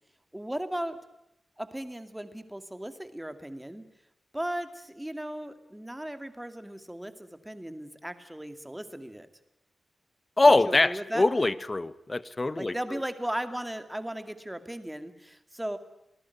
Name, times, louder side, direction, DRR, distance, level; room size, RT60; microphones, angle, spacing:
voice 1, 0.3-1.0 1.6-3.8 4.3-9.3 10.7-11.2 12.6-15.8, right 1 dB, 5° right, 9 dB, 2.4 m, -36 dB
voice 2, 10.4-13.0, left 2 dB, 25° left, 16 dB, 1.0 m, -23 dB
28.5 x 19.5 x 9.4 m, 0.85 s
wide cardioid pair, 130°, 0 cm